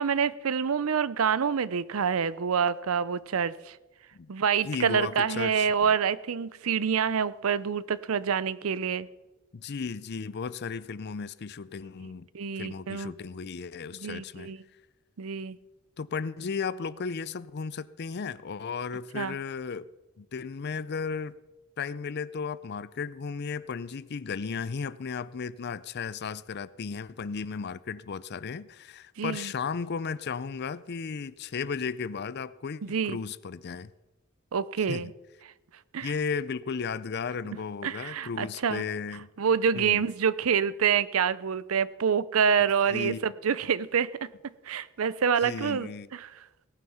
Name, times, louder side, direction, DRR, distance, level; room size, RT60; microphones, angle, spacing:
voice 1, 0.0-3.8 4.3-9.1 12.3-13.1 14.0-14.6 15.2-15.6 19.1-19.3 29.2-29.5 32.8-33.2 34.5-35.1 35.9-36.1 37.8-38.9 39.4-44.3 44.7-46.3, right 7 dB, 80° right, 0.5 m, -27 dB
voice 2, 4.6-5.9 9.5-12.3 12.6-14.5 16.0-19.9 20.2-21.4 21.8-33.9 34.9-35.1 36.0-39.3 39.8-40.0 42.6-43.3 45.4-46.1, left 5 dB, 50° left, 0.5 m, -35 dB
17.5 x 9.4 x 5.6 m
head